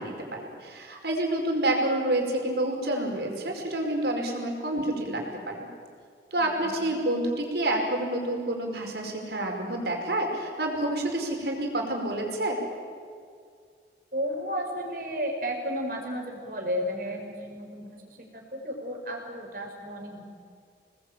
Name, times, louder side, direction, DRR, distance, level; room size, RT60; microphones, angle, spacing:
voice 1, 0.0-5.7 6.3-12.6, right 1 dB, 70° right, 1 dB, 5.2 m, -28 dB
voice 2, 6.3-6.7 14.1-20.2, equal, 50° right, 2 dB, 5.0 m, -33 dB
27.0 x 19.5 x 8.8 m, 2.2 s
head